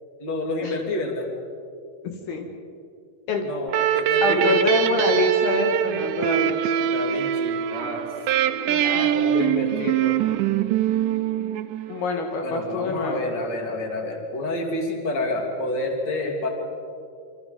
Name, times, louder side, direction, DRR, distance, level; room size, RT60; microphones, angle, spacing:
voice 1, 0.2-1.3 3.4-4.5 6.9-8.1 8.8-10.2 12.4-16.5, left 2 dB, 30° left, 1 dB, 3.2 m, -29 dB
voice 2, 2.0-2.5 3.3-3.5 4.2-6.8 8.7-9.1 11.9-13.2, left 3 dB, 70° left, 3 dB, 4.0 m, -25 dB
sound 1, 3.7-12.2, right 11 dB, 85° right, 1.9 m, -23 dB
27.5 x 26.5 x 5.3 m, 2.3 s
omnidirectional pair, 4.7 m